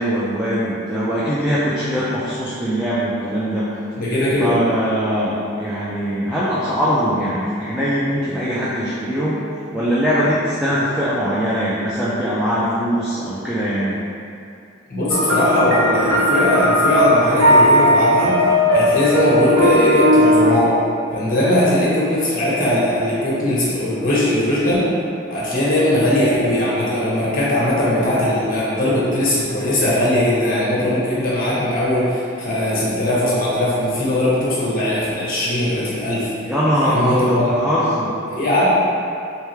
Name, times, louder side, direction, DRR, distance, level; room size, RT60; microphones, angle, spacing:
voice 1, 0.0-3.7 4.4-9.4 9.7-14.0 36.4-38.1, equal, 5° right, -10 dB, 0.4 m, -21 dB
voice 2, 4.0-4.5 14.9-18.4 18.7-20.8 21.1-24.9 25.3-36.3 36.8-37.5 38.3-38.6, left 1 dB, 45° left, -7 dB, 1.0 m, -19 dB
sound 1, 15.1-20.5, equal, 75° right, 0.7 m, -16 dB
3.3 x 3.2 x 3.2 m, 2.5 s
head